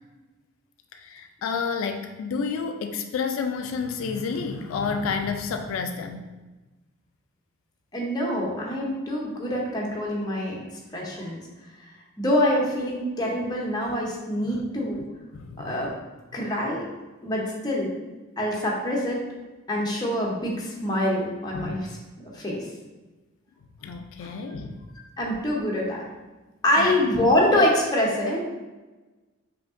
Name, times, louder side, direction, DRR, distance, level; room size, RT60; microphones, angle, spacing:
voice 1, 0.9-6.2 15.3-15.9 21.5-21.8 23.8-24.8 26.8-26.9, left 5 dB, 85° left, 5 dB, 0.3 m, -30 dB
voice 2, 7.9-10.6 10.9-11.4 12.2-15.0 15.6-15.9 16.3-16.8 17.2-17.9 18.4-19.2 19.7-21.9 22.2-22.7 24.2-24.3 25.2-26.0 26.6-28.4, left 1 dB, 20° left, -3 dB, 0.7 m, -25 dB
5.1 x 2.8 x 2.5 m, 1.2 s
head